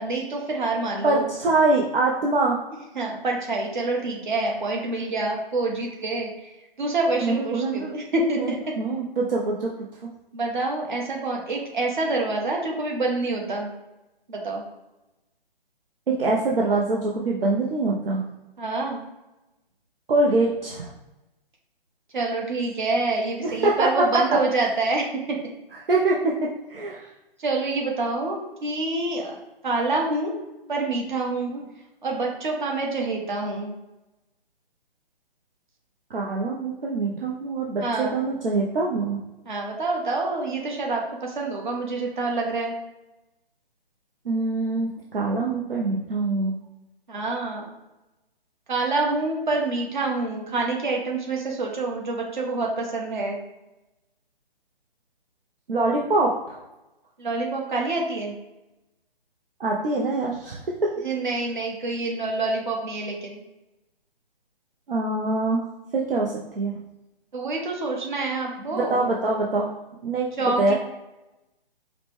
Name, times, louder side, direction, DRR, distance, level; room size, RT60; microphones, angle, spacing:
voice 1, 0.0-1.3 2.9-6.3 6.8-8.6 10.3-13.7 14.3-14.6 18.6-19.0 22.1-25.4 27.4-29.4 29.6-30.3 30.7-31.5 32.0-33.7 37.8-38.2 39.5-42.8 47.1-47.7 48.7-53.4 57.2-58.3 61.0-63.4 67.3-69.1 70.4-70.7, right 3 dB, 55° right, 0 dB, 1.1 m, -27 dB
voice 2, 1.0-2.6 7.2-7.9 8.4-9.7 10.0-10.1 16.1-18.2 20.1-20.9 23.4-24.1 24.3-24.4 25.7-27.1 31.5-31.6 36.1-39.2 44.2-46.5 55.7-56.6 59.6-60.9 64.9-65.7 65.9-66.7 68.6-69.7 70.0-70.3 70.6-70.7, right 2 dB, 70° right, -2 dB, 0.7 m, -24 dB
4.9 x 2.1 x 3.2 m, 0.98 s
figure-of-eight pair, 140°, 30 cm